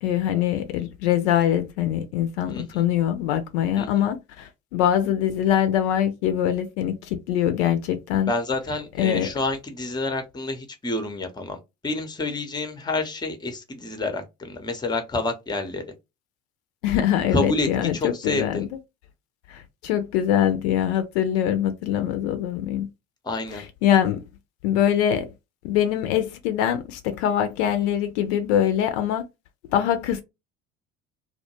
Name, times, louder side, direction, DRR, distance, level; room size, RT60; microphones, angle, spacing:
voice 1, 0.0-8.3 9.0-9.3 16.8-18.7 19.5-22.9 23.5-24.2 24.6-25.3 25.6-29.2 29.7-30.2, left 10 dB, 60° left, 0.5 m, -23 dB
voice 2, 2.5-2.8 3.8-3.9 8.3-15.8 17.3-17.7 17.9-18.6 23.2-23.6, left 2 dB, 10° left, 0.6 m, -28 dB
2.2 x 2.0 x 2.9 m
figure-of-eight pair, 60°, 38 cm